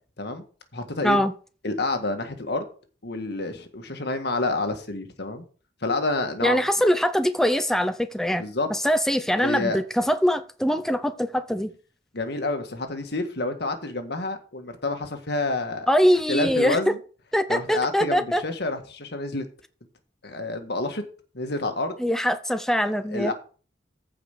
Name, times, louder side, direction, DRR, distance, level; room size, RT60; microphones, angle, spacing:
voice 1, 0.7-1.2 1.6-2.7 3.0-5.4 5.8-6.6 8.4-8.7 9.4-9.8 12.1-15.9 16.3-17.0 17.5-19.5 20.2-21.0 21.3-22.0 23.1-23.3, left 2 dB, 65° left, 1.8 m, -28 dB
voice 2, 6.4-8.5 8.7-11.7 15.9-16.8 17.3-18.4 22.0-23.3, equal, 5° left, 0.6 m, -23 dB
14.5 x 5.2 x 5.0 m
head